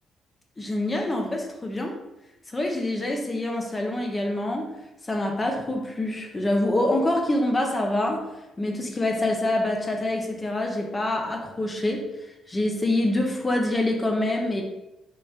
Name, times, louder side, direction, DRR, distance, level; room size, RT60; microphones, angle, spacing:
voice 1, 0.6-2.0 2.5-4.8 5.0-8.3 8.6-14.6, left 1 dB, 25° left, 2 dB, 0.5 m, -26 dB
3.7 x 2.6 x 3.3 m, 0.95 s
cardioid pair, 90°, 0 cm